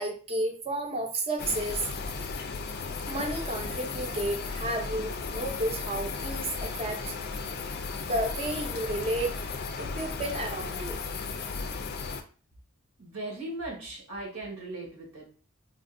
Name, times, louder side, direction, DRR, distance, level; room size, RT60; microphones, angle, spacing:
voice 1, 0.0-1.8 3.1-7.1 8.0-9.3 9.8-11.0, right 1 dB, 30° right, 2 dB, 0.6 m, -32 dB
sound 1, 1.4-12.2, left 4 dB, 50° left, 0.4 m, -35 dB
voice 2, 13.0-15.3, right 2 dB, 80° right, -1 dB, 1.3 m, -38 dB
3.5 x 2.4 x 2.6 m, 0.38 s
head